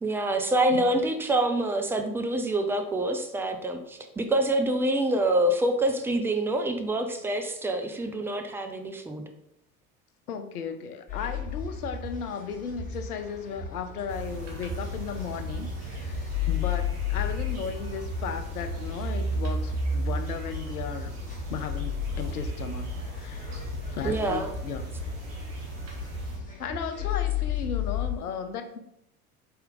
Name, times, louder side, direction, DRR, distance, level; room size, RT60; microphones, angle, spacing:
voice 1, 0.0-9.2 24.0-24.5, right 1 dB, 5° right, 5 dB, 0.3 m, -26 dB
voice 2, 10.3-21.1 21.5-23.6 23.9-24.8 26.6-28.8, left 7 dB, 80° left, 8 dB, 0.6 m, -35 dB
sound 1, 11.1-28.1, left 4 dB, 15° left, 1.5 m, -33 dB
sound 2, 14.1-26.4, equal, 55° right, 1.5 m, -37 dB
4.2 x 3.3 x 3.7 m, 0.79 s
figure-of-eight pair, 70°, 44 cm